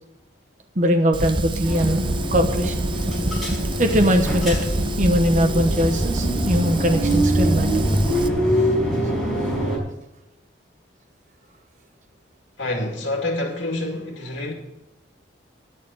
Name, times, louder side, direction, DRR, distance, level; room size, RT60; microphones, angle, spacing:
voice 1, 0.8-2.7 3.8-4.7 5.0-7.9, equal, 45° right, 4 dB, 1.0 m, -21 dB
Fire, 1.1-8.3, right 2 dB, 25° right, 0.5 m, -26 dB
sound 1, 1.6-9.8, equal, ahead, 4.9 m, -24 dB
voice 2, 12.6-14.5, left 2 dB, 80° left, -1 dB, 2.2 m, -27 dB
10.5 x 6.7 x 8.2 m, 0.88 s
head